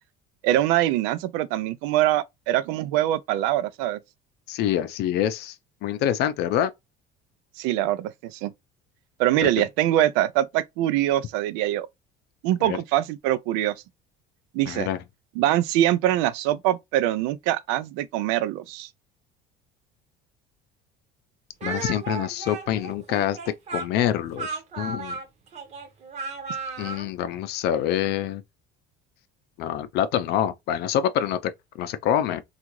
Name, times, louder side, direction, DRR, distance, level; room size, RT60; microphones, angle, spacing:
voice 1, 0.4-4.0 7.6-8.5 9.2-11.9 12.4-13.7 14.5-14.9 15.4-18.9, right 13 dB, 85° right, 0.4 m, -23 dB
voice 2, 4.5-5.5 5.8-6.7 9.4-9.5 12.6-12.8 14.7-15.0 21.6-23.4 23.7-25.2 26.8-28.4 29.6-31.5 31.8-32.4, left 10 dB, 55° left, 0.5 m, -26 dB
Speech, 21.6-27.1, right 4 dB, 35° right, 0.8 m, -34 dB
3.6 x 2.5 x 3.0 m
cardioid pair, 145°, 20 cm